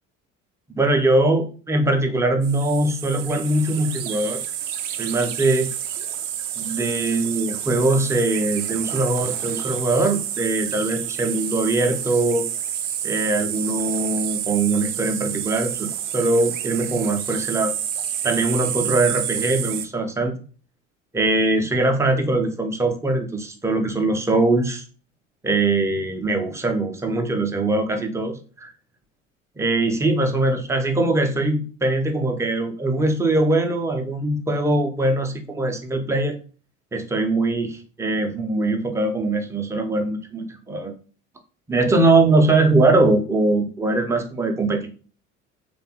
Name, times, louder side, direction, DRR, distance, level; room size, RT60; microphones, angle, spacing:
voice 1, 0.8-4.4 4.9-5.7 6.6-12.5 13.0-17.7 18.2-20.3 21.1-24.8 25.4-28.7 29.6-36.4 36.9-40.9 41.7-44.9, right 2 dB, 10° right, 3 dB, 0.5 m, -21 dB
sound 1, 2.4-19.9, right 10 dB, 70° right, 0.5 m, -29 dB
3.3 x 2.3 x 2.7 m, 0.39 s
figure-of-eight pair, 60°, 39 cm